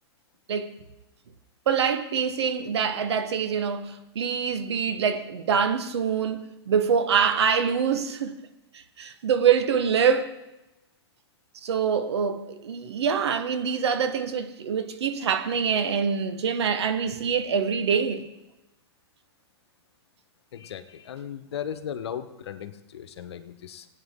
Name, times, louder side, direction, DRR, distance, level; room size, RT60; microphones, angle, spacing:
voice 1, 1.7-8.4 9.0-10.3 11.6-18.2, right 7 dB, 80° right, 1.3 m, -25 dB
voice 2, 20.5-23.9, left 9 dB, 75° left, 1.1 m, -37 dB
19.0 x 9.1 x 3.7 m
hypercardioid pair, 140°, 14 cm